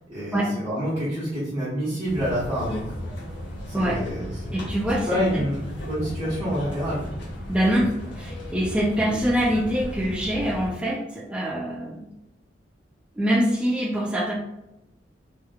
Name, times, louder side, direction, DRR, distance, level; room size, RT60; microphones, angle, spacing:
voice 1, 0.1-2.8 3.7-4.5 5.1-7.0, equal, 20° right, -12 dB, 1.0 m, -27 dB
sound 1, 2.0-10.7, equal, 90° left, 1.1 m, -35 dB
voice 2, 4.5-5.1 5.3-5.4 7.5-12.0 13.1-14.3, equal, 5° right, -3 dB, 0.4 m, -24 dB
3.4 x 3.0 x 2.3 m, 0.88 s
head